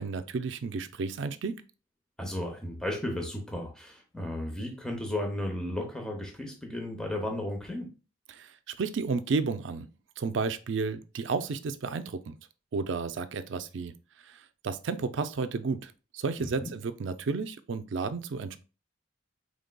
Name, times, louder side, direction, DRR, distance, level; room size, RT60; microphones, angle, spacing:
voice 1, 0.0-1.6 8.3-9.9 10.2-12.4 12.7-13.9 14.2-18.6, right 4 dB, 70° right, 0.4 m, -32 dB
voice 2, 2.2-7.9 16.4-16.7, left 1 dB, 5° left, 0.7 m, -34 dB
5.1 x 3.3 x 2.2 m
head